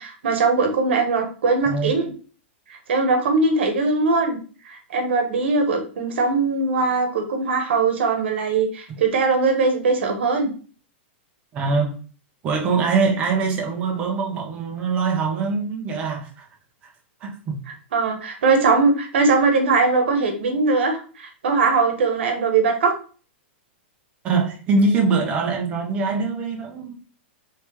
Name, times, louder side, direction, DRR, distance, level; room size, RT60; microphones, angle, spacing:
voice 1, 0.0-2.1 2.9-4.4 4.6-10.5 17.9-22.9, right 4 dB, 70° right, 1.0 m, -20 dB
voice 2, 1.6-1.9 11.5-11.9 12.4-16.5 17.2-17.6 24.2-26.9, right 4 dB, 20° right, 0.6 m, -23 dB
3.3 x 3.2 x 3.0 m
supercardioid pair, 175°, 6 cm